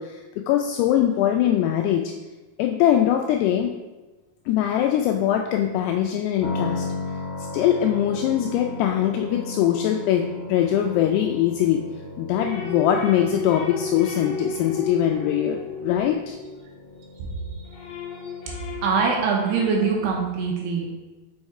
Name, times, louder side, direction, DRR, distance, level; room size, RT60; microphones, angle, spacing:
voice 1, 0.0-2.1 2.6-3.7 4.5-6.9 7.5-11.8 12.2-16.4, left 11 dB, 85° left, 3 dB, 2.4 m, -22 dB
sound 1, 6.4-20.2, left 3 dB, 25° right, 2.2 m, -36 dB
sound 2, 12.3-17.0 17.4-20.2, left 2 dB, 60° left, 2.4 m, -34 dB
voice 2, 18.8-20.9, right 5 dB, 75° right, 0 dB, 2.7 m, -23 dB
6.3 x 5.3 x 4.7 m, 1.1 s
omnidirectional pair, 5.2 m